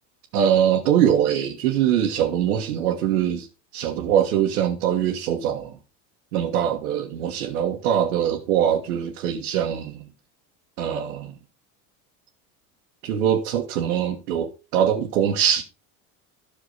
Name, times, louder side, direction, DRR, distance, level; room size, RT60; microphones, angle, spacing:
voice 1, 0.3-3.5 3.7-5.7 6.3-10.0 10.8-11.3 13.0-15.6, right 9 dB, 85° right, 1.7 m, -22 dB
13.0 x 6.3 x 4.0 m
supercardioid pair, 95°, 44 cm